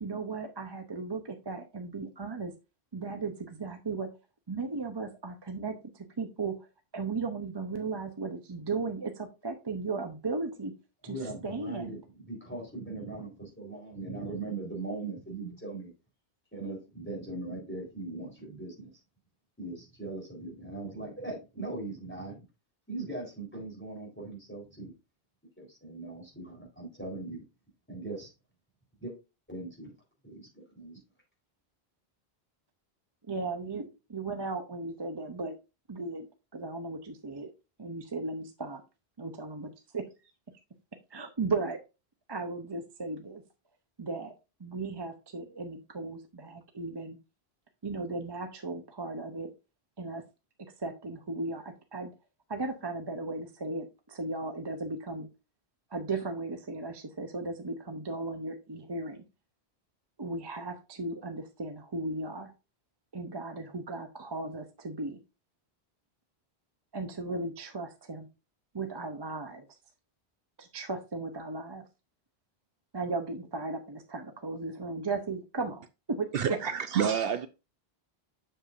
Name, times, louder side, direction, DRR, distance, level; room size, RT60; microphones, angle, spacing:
voice 1, 0.0-2.5 2.9-4.1 4.5-6.6 6.9-10.7 11.0-12.0 33.3-35.6 35.9-36.3 36.5-37.5 37.8-38.8 39.2-40.1 41.1-41.8 42.3-43.4 44.0-44.3 44.6-47.2 47.8-49.5 50.0-50.2 50.8-52.1 52.5-55.3 55.9-59.2 60.2-62.5 63.1-65.2 66.9-68.3 68.7-69.7 70.6-71.8 72.9-75.8 76.1-76.7, right 3 dB, 30° right, 0.6 m, -36 dB
voice 2, 11.0-15.9 16.5-18.9 19.6-22.4 22.9-24.9 25.6-27.4 27.9-28.3 29.0-29.1 29.5-29.9 30.2-31.0, right 2 dB, 10° left, 3.8 m, -40 dB
voice 3, 76.3-77.5, right 8 dB, 70° right, 0.7 m, -28 dB
7.7 x 6.8 x 2.5 m
omnidirectional pair, 1.1 m